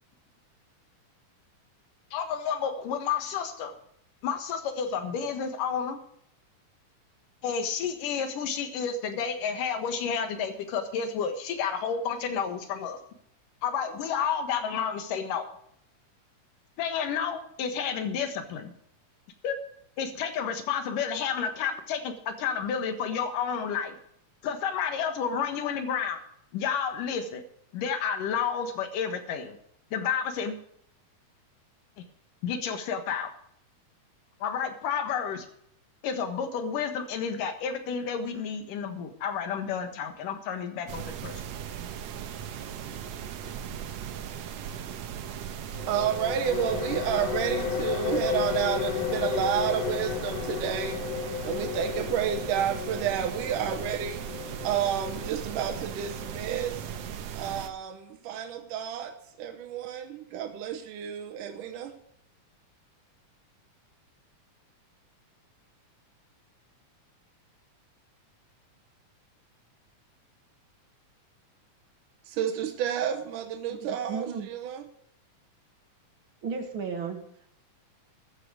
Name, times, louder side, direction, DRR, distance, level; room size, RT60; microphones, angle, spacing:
voice 1, 2.1-3.7 4.2-6.0 7.4-13.0 13.6-15.5 16.8-18.7 19.4-19.6 20.0-23.9 24.4-26.2 26.5-27.4 27.7-29.6 29.9-30.6 32.4-33.3 34.4-35.5 36.0-41.4, left 7 dB, 85° left, 8 dB, 3.1 m, -30 dB
sound 1, 40.9-57.7, right 9 dB, 65° right, 2.0 m, -38 dB
sound 2, 45.8-57.1, left 8 dB, 65° left, 1.9 m, -34 dB
voice 2, 45.9-51.0 51.4-54.2 54.6-56.8 57.3-59.1 59.4-61.9 72.3-74.8, right 9 dB, 80° right, 5 dB, 2.6 m, -30 dB
voice 3, 73.7-74.5 76.4-77.2, right 5 dB, 45° right, 5 dB, 2.1 m, -34 dB
14.0 x 10.0 x 5.0 m, 0.71 s
omnidirectional pair, 3.7 m